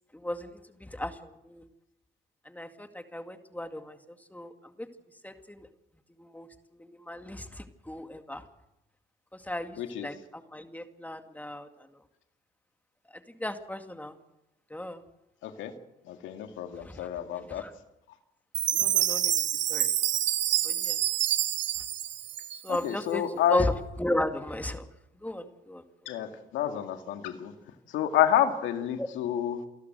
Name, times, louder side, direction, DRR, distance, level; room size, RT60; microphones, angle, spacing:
voice 1, 0.1-0.5 0.8-1.2 1.5-1.6 2.5-4.0 4.3-4.5 5.2-5.7 6.2-6.5 6.8-8.4 9.3-11.7 13.4-14.1 14.7-15.0 16.9-17.1 17.6-17.7 18.7-19.3 19.7-19.9 20.6-21.0 22.6-23.2 23.5-23.7 24.0-24.9 25.2-25.8 29.0-29.1, left 1 dB, 10° left, 7 dB, 2.2 m, -35 dB
voice 2, 9.8-10.1 15.4-15.7 16.1-17.7 22.7-23.7 26.1-27.5 27.9-29.7, left 10 dB, 85° left, 6 dB, 2.2 m, -29 dB
Chime, 18.5-22.9, right 12 dB, 70° right, 1.3 m, -27 dB
28.5 x 12.0 x 8.0 m, 0.89 s
cardioid pair, 75°, 19 cm